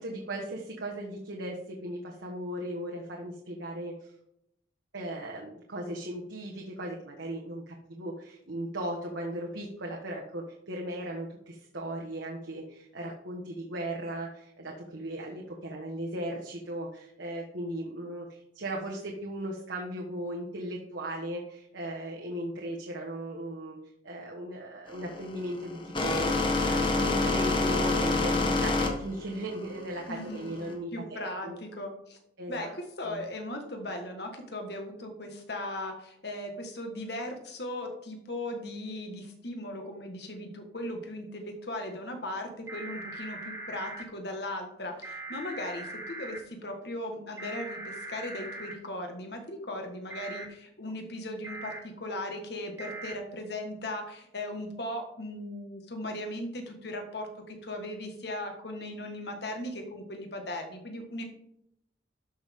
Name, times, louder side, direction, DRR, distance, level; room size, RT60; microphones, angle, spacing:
voice 1, 0.0-4.1 4.9-23.8 24.0-31.6 32.4-32.7 33.0-33.2, right 1 dB, 75° right, -2 dB, 1.4 m, -37 dB
sound 1, 24.9-30.7, left 3 dB, 25° left, 1.3 m, -27 dB
voice 2, 30.1-32.2 32.5-61.2, left 1 dB, 60° left, 3 dB, 1.7 m, -38 dB
sound 2, 42.7-44.0 45.0-46.4 47.4-48.7 50.1-50.4 51.4-51.8 52.8-53.1, right 2 dB, 15° right, 1.3 m, -40 dB
12.5 x 6.2 x 3.7 m, 0.78 s
head